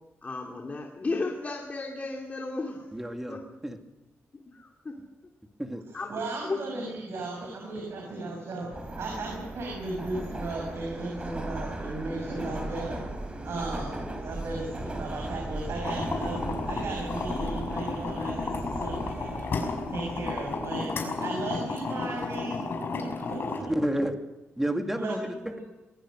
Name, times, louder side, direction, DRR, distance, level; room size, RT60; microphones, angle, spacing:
voice 1, 0.2-2.9 3.3-3.4 4.5-5.0 5.9-6.1 6.4-6.9, left 3 dB, 35° left, 1 dB, 2.7 m, -34 dB
voice 2, 2.9-3.8 5.6-5.9 23.6-24.1 24.6-25.6, right 1 dB, 5° right, 4 dB, 2.4 m, -30 dB
voice 3, 6.1-8.7 8.9-13.0 13.4-20.9 21.2-22.6 23.0-23.7 25.0-25.6, right 2 dB, 70° right, 1 dB, 6.4 m, -36 dB
Subway metro underground, 8.7-20.7, right 1 dB, 25° right, 4.1 m, -37 dB
sound 1, 15.8-23.6, left 3 dB, 50° left, 5.8 m, -32 dB
22.0 x 22.0 x 6.4 m, 0.99 s
cardioid pair, 110°, 5 cm